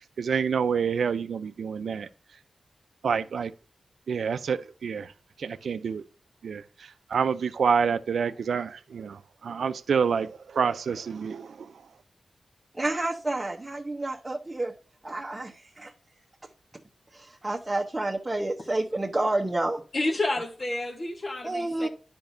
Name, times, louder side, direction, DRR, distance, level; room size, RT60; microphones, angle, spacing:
voice 1, 0.2-2.1 3.0-3.5 4.1-5.1 5.4-6.0 6.4-11.7, right 6 dB, 85° right, 0.4 m, -28 dB
voice 2, 12.8-14.7 15.0-15.9 17.1-19.8 21.4-21.9, right 2 dB, 20° right, 0.9 m, -29 dB
voice 3, 19.9-21.9, left 2 dB, 45° left, 1.1 m, -30 dB
10.5 x 5.2 x 2.6 m
wide cardioid pair, 75°, 0 cm